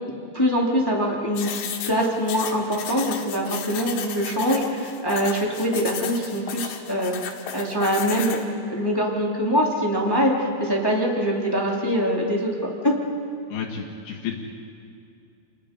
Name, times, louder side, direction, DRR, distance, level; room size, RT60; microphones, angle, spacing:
voice 1, 0.0-1.5 1.8-8.4 8.7-12.9, equal, 10° left, -2 dB, 1.4 m, -24 dB
sound 1, 1.4-8.4, left 8 dB, 85° left, 3.9 m, -34 dB
voice 2, 13.5-14.3, left 7 dB, 65° left, -1 dB, 3.7 m, -31 dB
29.0 x 21.0 x 5.2 m, 2.4 s
omnidirectional pair, 5.1 m